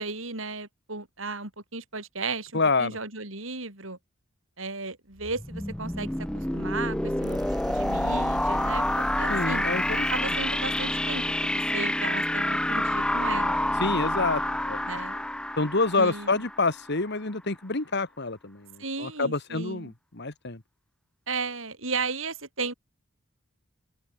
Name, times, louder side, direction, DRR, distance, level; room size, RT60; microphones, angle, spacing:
voice 1, 0.0-4.0 4.6-9.7 10.1-13.6 14.8-15.1 16.0-16.5 18.8-19.9 21.3-22.7, right 3 dB, 75° right, 6.8 m, -35 dB
voice 2, 2.5-3.0 9.3-10.1 13.8-14.4 14.7-14.8 15.6-18.6 19.0-20.6, left 3 dB, 55° left, 2.0 m, -27 dB
sound 1, 5.2-16.9, left 1 dB, 5° left, 0.5 m, -28 dB
sound 2, 7.2-10.2, right 1 dB, 20° right, 1.5 m, -40 dB
open air
head